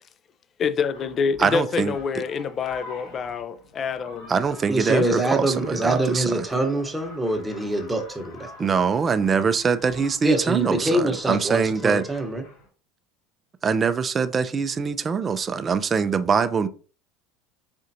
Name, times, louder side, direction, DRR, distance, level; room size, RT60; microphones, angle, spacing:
voice 1, 0.6-4.3 4.9-5.5, left 6 dB, 40° left, 0.4 m, -27 dB
sound 1, 0.9-12.7, left 2 dB, 65° left, 2.0 m, -46 dB
voice 2, 1.4-2.0 4.3-6.4 8.6-12.0 13.6-16.7, right 5 dB, 30° right, 0.4 m, -23 dB
voice 3, 4.7-8.7 10.2-12.4, right 1 dB, 10° right, 1.0 m, -24 dB
4.4 x 3.6 x 2.7 m
hypercardioid pair, 90°, 0 cm